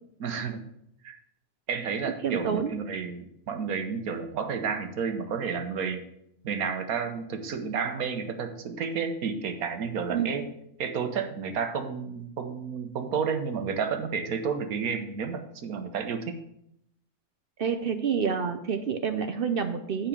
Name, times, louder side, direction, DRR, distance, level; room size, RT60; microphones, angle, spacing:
voice 1, 0.2-0.7 1.0-1.2 1.7-6.0 6.4-10.4 10.8-16.4, right 6 dB, 75° right, 6 dB, 1.4 m, -31 dB
voice 2, 2.2-2.7 10.1-10.4 17.6-20.1, right 6 dB, 60° right, 7 dB, 0.6 m, -28 dB
7.4 x 5.1 x 7.2 m, 0.77 s
omnidirectional pair, 1.6 m